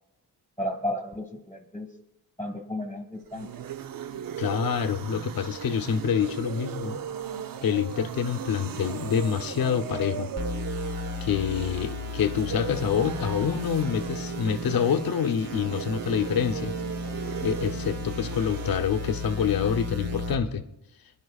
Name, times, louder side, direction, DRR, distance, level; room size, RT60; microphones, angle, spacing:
voice 1, 0.6-1.9 2.4-3.5, equal, 5° left, 3 dB, 1.4 m, -33 dB
sound 1, 3.1-18.8, right 8 dB, 60° right, 0.6 m, -37 dB
voice 2, 4.4-7.0 7.6-10.3 11.2-16.7 17.4-20.6, left 7 dB, 65° left, 7 dB, 0.9 m, -27 dB
sound 2, 10.4-20.4, left 1 dB, 40° right, 1.2 m, -35 dB
24.0 x 10.5 x 2.4 m, 0.83 s
wide cardioid pair, 110°, 39 cm